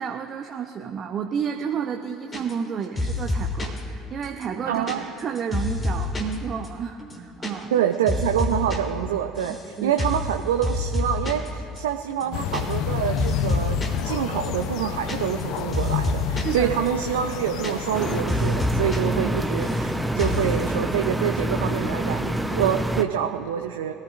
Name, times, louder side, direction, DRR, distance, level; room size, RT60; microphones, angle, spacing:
voice 1, 0.0-7.7 9.5-10.0 16.4-16.7 19.2-19.3, right 7 dB, 45° right, 3 dB, 0.9 m, -31 dB
sound 1, 2.3-2.7 3.0-3.8 4.2-6.3 6.6-6.7 7.0-7.5 7.8-8.8 9.0-9.7 10.0-10.3 10.6-11.5 11.8-11.9 12.1-12.9 13.2-14.0 14.4-16.6 16.9-17.0 17.2-18.0 18.3-19.0 19.2-19.9 20.2-20.5, left 2 dB, 25° left, 3.2 m, -28 dB
voice 2, 4.7-5.0 7.7-13.8 14.0-23.9, right 10 dB, 75° right, 5 dB, 0.6 m, -26 dB
sound 2, 12.3-18.2, left 9 dB, 55° left, 0.6 m, -29 dB
sound 3, 17.9-23.0, right 1 dB, 5° right, 1.0 m, -26 dB
25.5 x 14.0 x 2.6 m, 2.6 s
figure-of-eight pair, 60°, 0 cm